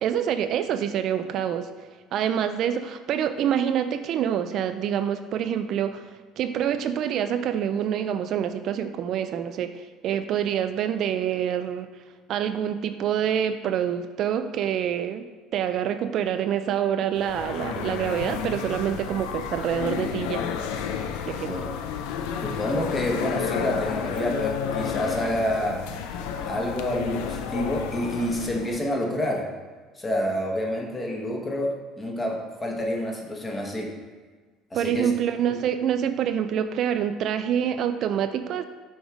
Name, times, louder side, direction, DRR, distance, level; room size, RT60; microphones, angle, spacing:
voice 1, 0.0-1.7 2.1-11.9 12.3-15.2 15.5-20.4 21.3-21.6 34.7-38.6, right 9 dB, 60° right, 9 dB, 0.3 m, -26 dB
sound 1, 17.2-28.8, left 7 dB, 85° left, 0.4 m, -31 dB
voice 2, 22.4-25.8 26.4-29.5 30.0-33.9 34.7-35.1 35.5-35.6, left 1 dB, 20° left, 0 dB, 1.2 m, -28 dB
6.2 x 3.5 x 4.9 m, 1.4 s
supercardioid pair, 105°, 0 cm